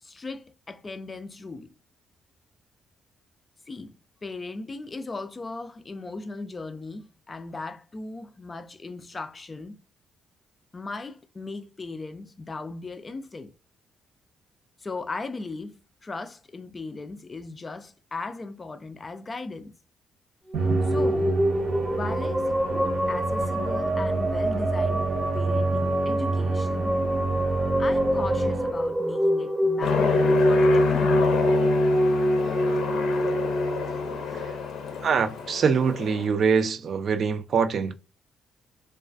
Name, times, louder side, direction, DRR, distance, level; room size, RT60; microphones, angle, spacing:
voice 1, 0.0-1.7 3.7-3.9 4.2-9.8 10.7-13.5 14.8-19.7 20.8-21.4 21.9-27.0 27.8-31.3 34.3-34.4, left 3 dB, 30° left, 0.3 m, -37 dB
sound 1, 20.5-35.0, equal, 15° right, 0.8 m, -25 dB
Musical instrument, 20.5-29.1, right 3 dB, 90° right, 0.8 m, -29 dB
Aircraft, 29.8-36.3, left 6 dB, 75° left, 0.6 m, -27 dB
voice 2, 35.0-38.0, right 6 dB, 55° right, 0.3 m, -24 dB
2.3 x 2.3 x 2.4 m
cardioid pair, 90°, 0 cm